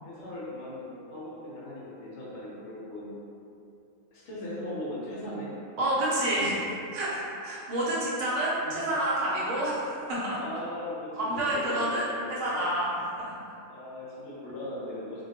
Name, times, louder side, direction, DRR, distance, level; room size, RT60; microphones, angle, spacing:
voice 1, 0.0-3.1 4.1-5.5 6.1-6.5 8.6-8.9 10.4-12.6 13.7-15.2, left 1 dB, 65° left, -8 dB, 0.8 m, -39 dB
voice 2, 5.8-6.5 6.9-10.4 11.2-13.4, right 1 dB, 70° right, -7 dB, 0.9 m, -29 dB
2.2 x 2.1 x 2.7 m, 2.6 s
omnidirectional pair, 1.4 m